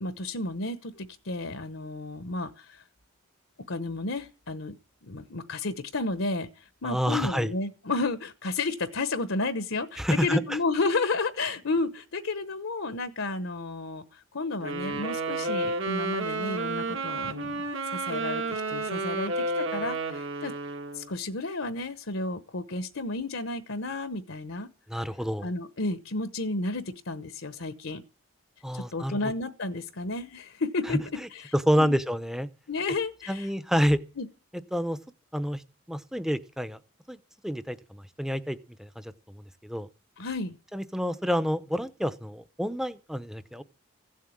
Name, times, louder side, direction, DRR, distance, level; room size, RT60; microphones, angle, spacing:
voice 1, 0.0-2.8 3.7-4.7 5.0-20.5 20.9-24.7 25.4-28.0 28.7-31.0 31.3-32.0 32.7-33.5 34.2-34.3 40.2-40.6, left 3 dB, 65° left, 1.0 m, -32 dB
voice 2, 6.8-7.5 10.0-10.4 24.9-25.5 28.6-29.2 30.9-31.0 31.5-32.5 33.3-34.0 34.7-35.0 35.3-35.6 35.9-36.8 37.1-37.2 37.4-39.9 40.7-43.6, equal, ahead, 0.7 m, -28 dB
Wind instrument woodwind instrument, 14.6-21.1, right 3 dB, 65° right, 1.6 m, -31 dB
16.0 x 7.5 x 8.6 m
head